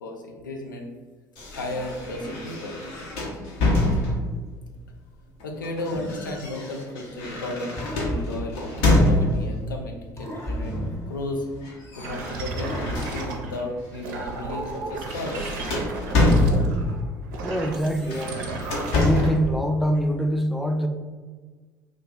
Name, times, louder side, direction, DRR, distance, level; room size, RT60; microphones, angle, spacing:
voice 1, 0.0-0.9 1.5-2.8 5.4-8.6 9.1-10.8 11.1-11.5 12.0-15.7, left 1 dB, 85° left, 2 dB, 0.4 m, -34 dB
sound 1, 1.4-4.5 5.4-9.6 10.6-11.0 11.3-13.6 14.1-14.3 14.6-17.0 17.9-19.5, left 1 dB, 65° left, 0.7 m, -25 dB
sound 2, 7.8-9.7 10.2-12.0 12.6-14.3, equal, 30° left, 0.8 m, -35 dB
sound 3, 12.0-13.6 13.9-19.3, right 3 dB, 65° right, 0.4 m, -33 dB
voice 2, 17.4-18.5 18.9-20.9, equal, ahead, 4 dB, 0.4 m, -24 dB
2.4 x 2.3 x 3.7 m, 1.4 s
figure-of-eight pair, 55°, 10 cm